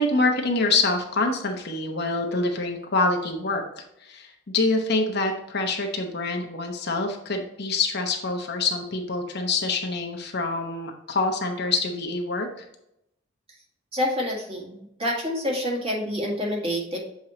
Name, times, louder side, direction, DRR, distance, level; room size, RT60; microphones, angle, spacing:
voice 1, 0.0-3.6 4.0-12.5, left 3 dB, 55° left, 2 dB, 0.9 m, -26 dB
voice 2, 13.9-17.0, left 1 dB, 30° right, -2 dB, 1.7 m, -27 dB
7.3 x 4.5 x 2.9 m, 0.80 s
head